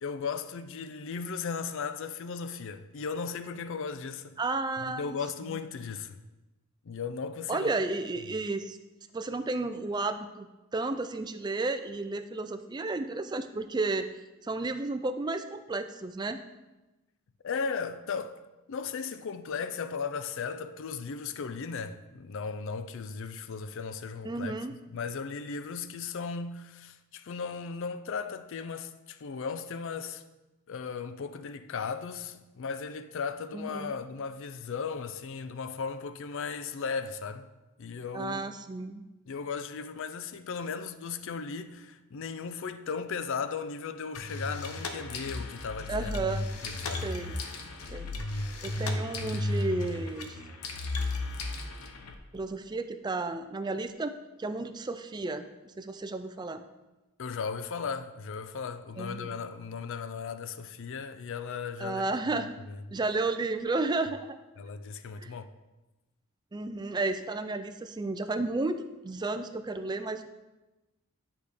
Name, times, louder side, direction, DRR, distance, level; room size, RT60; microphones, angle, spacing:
voice 1, 0.0-4.4 4.8-6.2 6.8-7.7 17.4-18.4 18.7-24.5 24.9-30.2 30.7-37.5 37.8-38.5 39.3-46.4 46.6-47.1 57.2-63.0 64.6-65.5, left 5 dB, 60° left, 0.4 m, -36 dB
voice 2, 4.4-5.2 5.5-5.6 7.5-8.8 9.1-14.0 14.4-16.4 24.2-24.7 33.5-33.9 38.1-39.1 45.9-46.5 47.0-47.4 47.9-48.1 48.6-50.4 52.3-54.1 54.4-55.5 55.8-56.6 59.0-59.3 61.8-62.5 62.9-64.4 65.2-65.3 66.5-70.3, right 3 dB, 20° right, 0.3 m, -32 dB
sound 1, 44.1-52.1, left 2 dB, 80° left, 0.8 m, -34 dB
10.0 x 4.9 x 3.4 m
head